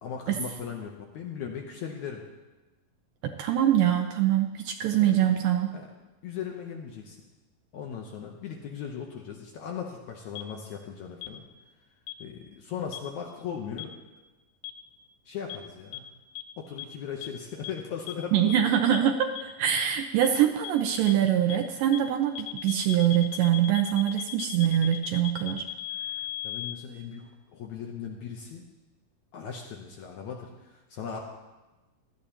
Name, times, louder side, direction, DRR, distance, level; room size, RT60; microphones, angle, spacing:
voice 1, 0.0-2.2 5.0-5.3 5.7-5.9 6.2-7.2 7.7-11.5 12.2-14.0 15.3-16.1 16.6-18.6 26.4-28.7 29.3-31.2, left 7 dB, 70° left, 1 dB, 1.9 m, -38 dB
voice 2, 3.2-5.7 18.3-25.6, right 10 dB, 80° right, 4 dB, 2.2 m, -24 dB
sound 1, 10.4-10.5 11.2-11.3 12.1-12.2 12.9-13.0 13.8-13.9 14.6-14.7 15.5-15.6 15.9-16.0 16.4-16.5 16.8-16.9 17.2-17.3 17.6-17.7 18.1-18.2 18.5-18.6 18.9-19.0 19.4-19.5 19.8-19.9 20.2-20.3 20.6-20.7 21.1-21.2 21.5-21.6 21.9-22.0 22.4-26.7, left 14 dB, 90° left, 2.6 m, -36 dB
17.0 x 12.5 x 2.9 m, 1.1 s
omnidirectional pair, 4.1 m